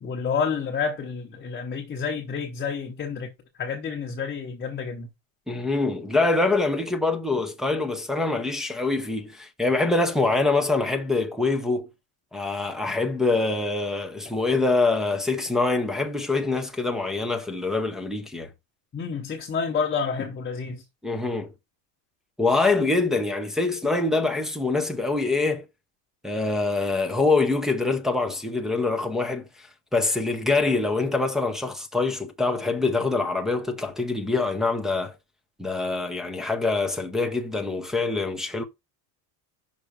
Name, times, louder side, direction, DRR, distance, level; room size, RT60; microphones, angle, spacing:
voice 1, 0.0-3.3 3.6-5.1 18.9-20.8, left 6 dB, 20° left, 0.8 m, -29 dB
voice 2, 5.5-11.9 12.3-18.5 21.0-21.5 22.4-25.6 26.2-29.5 29.9-35.1 35.6-38.6, left 3 dB, ahead, 0.4 m, -24 dB
5.8 x 5.1 x 4.9 m
cardioid pair, 155°, 49 cm